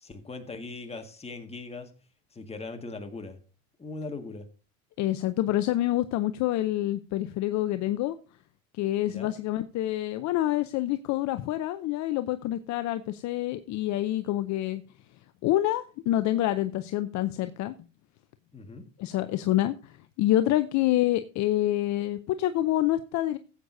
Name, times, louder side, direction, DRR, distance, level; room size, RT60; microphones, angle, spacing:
voice 1, 0.0-1.9 2.3-3.4 3.8-4.5 9.1-9.3 18.5-18.8, left 3 dB, 15° left, 5 dB, 1.7 m, -39 dB
voice 2, 5.0-8.2 8.8-14.8 15.4-17.7 19.0-23.4, left 14 dB, 45° left, 11 dB, 0.6 m, -27 dB
15.5 x 8.1 x 2.6 m, 0.35 s
supercardioid pair, 95°, 38 cm